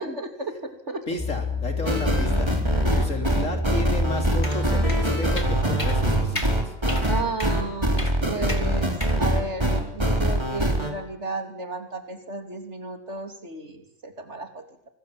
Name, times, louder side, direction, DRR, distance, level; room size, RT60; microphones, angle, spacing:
voice 1, 0.0-1.0 7.1-8.9 9.2-14.6, right 2 dB, 65° right, 5 dB, 3.5 m, -33 dB
voice 2, 1.1-2.5 2.9-6.7, left 1 dB, 90° left, 4 dB, 4.1 m, -33 dB
sound 1, 1.2-6.4, left 1 dB, 5° left, 7.3 m, -28 dB
sound 2, 1.8-10.9, right 1 dB, 20° right, 3.8 m, -23 dB
sound 3, 4.4-4.6 4.9-5.0 5.4-5.5 5.8-6.0 6.4-6.5 6.9-7.1 7.4-7.5 8.0-8.2 8.5-8.6 9.0-9.2, left 1 dB, 25° left, 2.8 m, -33 dB
25.5 x 20.5 x 7.7 m, 0.75 s
omnidirectional pair, 1.3 m